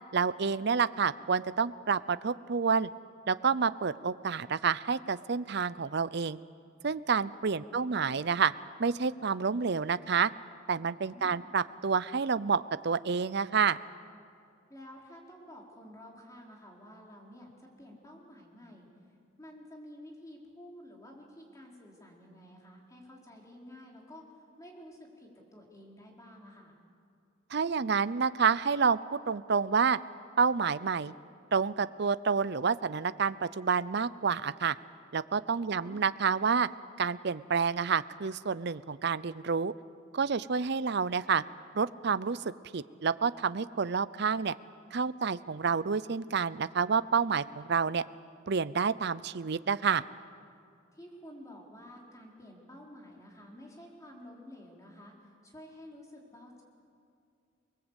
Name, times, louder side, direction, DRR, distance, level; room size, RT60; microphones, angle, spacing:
voice 1, 0.1-2.9 3.3-6.4 6.8-8.5 8.8-10.3 10.7-13.8 27.5-30.0 30.4-31.1 31.5-34.8 35.1-36.7 37.0-39.7 40.1-41.4 41.7-42.4 42.7-44.5 44.9-48.0 48.5-50.0, right 5 dB, 60° right, 16 dB, 0.6 m, -29 dB
voice 2, 7.5-8.1 11.1-11.5 14.7-18.9 19.4-26.7 35.6-36.0 50.9-56.6, left 1 dB, 15° left, -1 dB, 4.1 m, -51 dB
28.5 x 20.5 x 8.2 m, 2.3 s
head